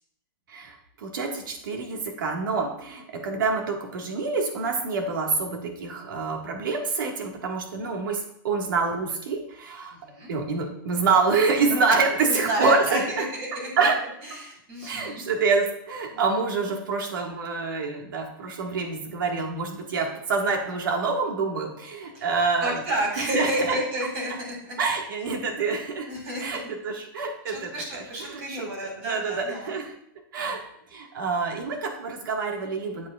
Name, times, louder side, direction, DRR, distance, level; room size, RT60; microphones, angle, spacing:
voice 1, 0.5-10.0 10.3-13.3 13.8-14.0 14.8-22.8 23.2-23.8 24.8-26.1 26.4-29.9 30.3-30.6 30.9-33.1, right 4 dB, 65° right, 2 dB, 1.6 m, -27 dB
voice 2, 12.3-13.0 13.3-13.5 13.8-13.9 14.3-15.3 22.1-22.3 22.6-24.8 26.1-26.4 27.5-29.7, right 1 dB, 30° right, -1 dB, 2.8 m, -30 dB
8.1 x 7.4 x 2.4 m, 0.72 s
hypercardioid pair, 170°, 12 cm